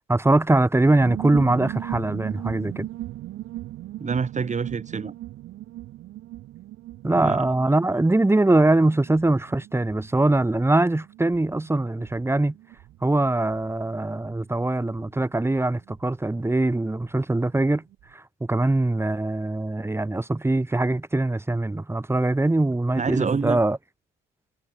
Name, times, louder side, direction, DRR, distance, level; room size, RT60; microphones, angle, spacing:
voice 1, 0.1-2.9 7.0-12.6 13.0-17.8 18.1-23.8, right 2 dB, 10° right, 1.9 m, -22 dB
sound 1, 0.8-17.1 17.4-17.5 17.7-18.1, right 15 dB, 90° right, 5.2 m, -39 dB
voice 2, 4.0-5.1 7.1-7.4 22.9-23.6, right 5 dB, 35° right, 2.9 m, -27 dB
cardioid pair, 90°, 20 cm